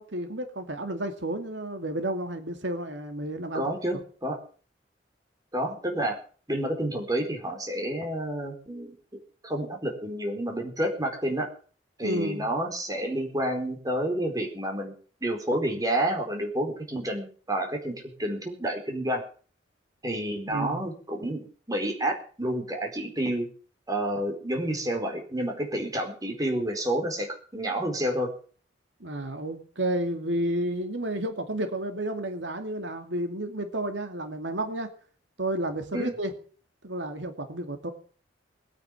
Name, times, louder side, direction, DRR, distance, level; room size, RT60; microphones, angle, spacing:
voice 1, 0.0-3.7 12.0-12.5 20.5-20.8 29.0-34.9 35.4-36.3 36.8-37.9, right 1 dB, 80° right, 6 dB, 2.5 m, -31 dB
voice 2, 3.5-4.4 5.5-6.2 6.5-9.0 9.4-11.5 12.0-14.9 15.2-19.2 20.0-21.4 21.7-23.5 23.9-28.3 35.9-36.1, right 1 dB, 20° right, 2 dB, 4.3 m, -29 dB
21.0 x 9.3 x 7.4 m, 0.42 s
head